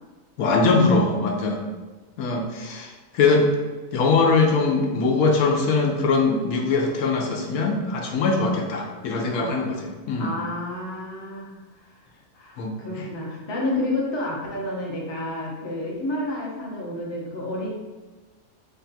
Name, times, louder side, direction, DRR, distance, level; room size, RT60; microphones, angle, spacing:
voice 1, 0.4-1.6 2.2-3.5 3.9-10.3 12.6-13.1, left 3 dB, 80° left, 1 dB, 1.0 m, -22 dB
voice 2, 9.3-9.7 10.2-11.6 11.9-12.0 12.3-17.7, left 1 dB, 30° left, -4 dB, 0.5 m, -30 dB
3.5 x 2.3 x 4.0 m, 1.3 s
omnidirectional pair, 1.5 m